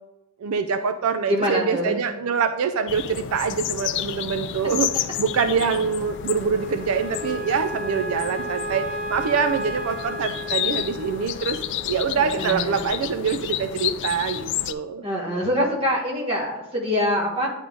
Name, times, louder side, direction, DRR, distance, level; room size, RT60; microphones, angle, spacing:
voice 1, 0.4-15.0, right 6 dB, 75° right, 9 dB, 0.4 m, -25 dB
voice 2, 1.3-2.0 12.2-12.9 15.0-17.5, equal, 25° right, -2 dB, 1.5 m, -25 dB
sound 1, 2.9-14.7, left 11 dB, 55° left, 0.3 m, -31 dB
Wind instrument woodwind instrument, 4.8-13.3, equal, 5° right, 1.9 m, -34 dB
9.3 x 3.6 x 3.8 m, 0.95 s
head